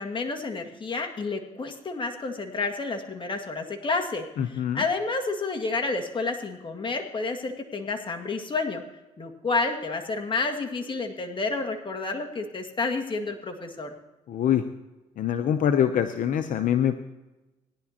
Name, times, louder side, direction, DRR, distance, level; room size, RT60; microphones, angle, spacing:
voice 1, 0.0-8.8 9.2-13.9, left 3 dB, 35° left, 4 dB, 2.0 m, -30 dB
voice 2, 4.4-4.8 14.3-14.6 15.2-17.0, left 9 dB, 65° left, 9 dB, 0.7 m, -24 dB
18.0 x 11.0 x 2.9 m, 1.1 s
supercardioid pair, 70°, 15 cm